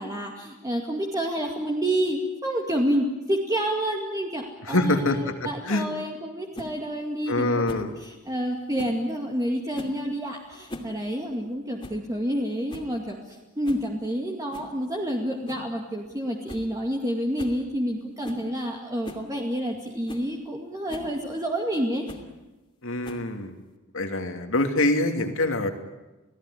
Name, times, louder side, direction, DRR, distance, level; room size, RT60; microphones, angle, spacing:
voice 1, 0.0-22.1, equal, 15° right, 0 dB, 2.3 m, -29 dB
voice 2, 4.7-5.3 5.6-5.9 7.3-7.9 22.8-23.5 23.9-25.7, left 2 dB, 65° left, 6 dB, 2.7 m, -24 dB
sound 1, 6.5-6.7 7.6-7.9 8.7-9.0 9.7-10.0 10.5-10.9 11.2-11.3 11.8-12.0 12.4-12.5 12.7-13.0 13.6-13.9 14.5-14.7 15.5-15.7 16.0-16.1 16.5-16.7 17.0-17.1 17.4-17.6 18.2-18.5 19.0-19.3 19.7-19.8 20.1-20.3 20.9-21.1 22.1-22.3 23.0-23.4, left 1 dB, 25° left, 2.7 m, -40 dB
29.5 x 17.5 x 10.0 m, 1.1 s
head